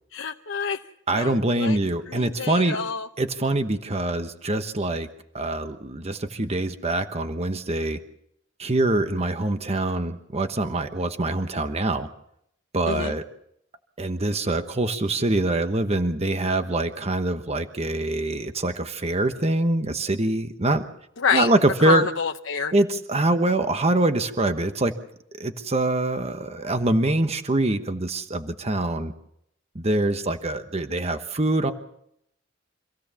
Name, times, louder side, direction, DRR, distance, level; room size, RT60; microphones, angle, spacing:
voice 1, 0.1-0.8 1.1-1.8 2.1-3.1 12.9-13.1 21.2-21.5 21.8-22.7, left 6 dB, 85° left, 4 dB, 0.8 m, -27 dB
voice 2, 1.1-2.8 3.2-5.1 5.3-8.0 8.6-12.1 12.7-13.2 14.0-20.9 21.3-22.0 22.7-24.9 25.4-29.1 29.7-31.7, right 2 dB, 35° right, 8 dB, 1.1 m, -24 dB
26.0 x 16.0 x 7.0 m, 0.74 s
head